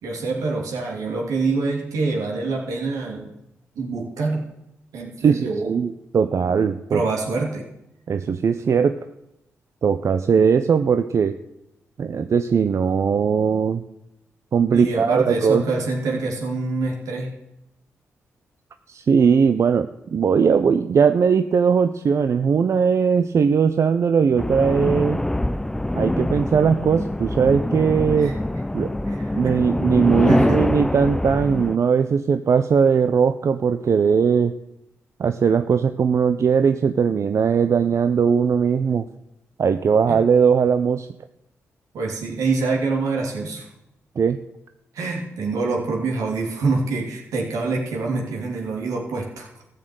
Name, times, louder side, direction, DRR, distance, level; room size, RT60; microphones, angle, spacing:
voice 1, 0.0-3.3 3.7-4.4 4.9-5.7 6.9-7.7 14.7-17.3 28.2-28.3 29.1-29.7 30.3-30.7 40.1-40.2 41.9-43.7 44.9-49.5, right 3 dB, 90° right, 0 dB, 3.0 m, -25 dB
voice 2, 5.2-7.0 8.1-9.0 9.8-11.4 12.0-13.8 14.5-15.6 18.9-25.2 26.0-28.4 28.7-28.9 29.3-34.6 35.2-39.1 39.6-41.1 44.2-44.4, right 6 dB, 60° right, 10 dB, 0.7 m, -19 dB
sound 1, 24.4-31.8, left 1 dB, 10° left, 0.5 m, -24 dB
14.5 x 6.7 x 9.3 m, 0.87 s
cardioid pair, 60°, 6 cm